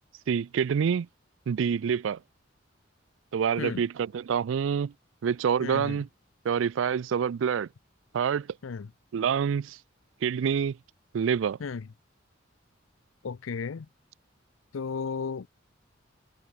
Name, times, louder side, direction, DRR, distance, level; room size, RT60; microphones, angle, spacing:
voice 1, 0.3-1.1 1.5-2.2 3.3-4.9 5.2-6.1 6.4-7.7 8.1-8.5 9.1-9.8 10.2-10.8 11.1-11.6, right 7 dB, 75° right, 0.4 m, -26 dB
voice 2, 5.6-6.0 8.6-8.9 11.6-11.8 13.2-13.9 14.7-15.5, left 5 dB, 90° left, 0.5 m, -34 dB
head